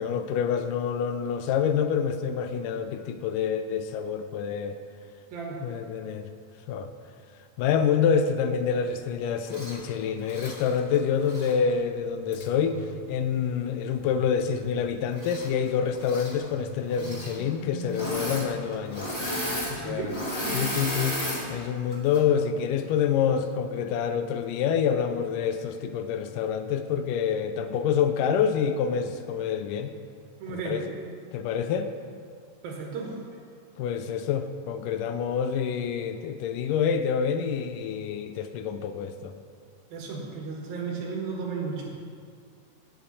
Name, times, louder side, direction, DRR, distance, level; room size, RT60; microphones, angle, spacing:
voice 1, 0.0-4.8 5.6-6.3 6.7-6.9 7.6-12.8 13.1-19.1 19.8-20.2 20.5-21.2 21.5-29.9 30.5-30.9 31.3-31.9 33.8-39.3, left 7 dB, 80° left, 9 dB, 1.9 m, -27 dB
voice 2, 5.3-5.6 19.8-20.2 20.4-20.7 30.4-30.9 32.6-33.2 39.9-41.9, right 4 dB, 75° right, -1 dB, 3.5 m, -34 dB
Engine / Mechanisms, 9.5-9.8 10.2-11.5 12.3-12.4 15.1-15.7 15.9-16.3 16.9-17.4 17.9-18.5 18.7-21.4 21.9-22.2, equal, 10° left, 1.2 m, -33 dB
sound 1, 12.2-15.3 16.5-19.4, left 1 dB, 40° left, 3.8 m, -42 dB
17.5 x 7.6 x 4.2 m, 2.1 s
omnidirectional pair, 4.2 m